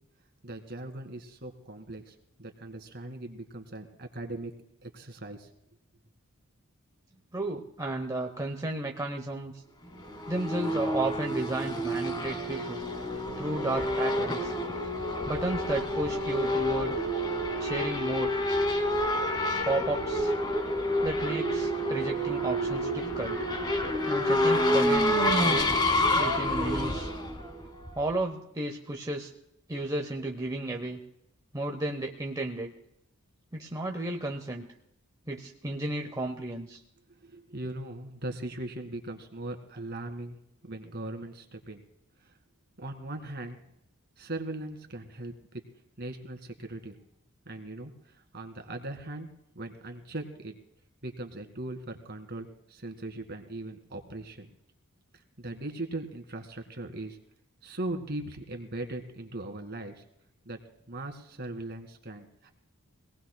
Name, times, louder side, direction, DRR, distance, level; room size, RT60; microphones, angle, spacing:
voice 1, 0.4-4.5 4.8-5.5 37.2-41.8 42.2-42.3 42.8-43.6 44.2-45.6 46.0-47.0 47.5-49.3 49.6-50.6 51.0-54.5 55.1-57.2 57.6-60.0 60.5-60.6 60.9-62.5, right 2 dB, 50° right, 5 dB, 1.8 m, -39 dB
voice 2, 7.3-9.6 10.3-12.9 13.4-14.5 15.3-17.1 17.6-18.4 19.6-20.3 21.0-23.4 24.1-25.1 25.4-25.8 26.2-27.1 27.9-29.3 29.7-31.0 31.5-32.7 33.5-34.7 35.3-36.8, right 2 dB, 15° right, 2 dB, 0.7 m, -33 dB
Race car auto racing / Accelerating revving vroom, 10.0-28.1, left 1 dB, 20° left, 1.2 m, -28 dB
24.5 x 18.5 x 2.2 m, 0.80 s
head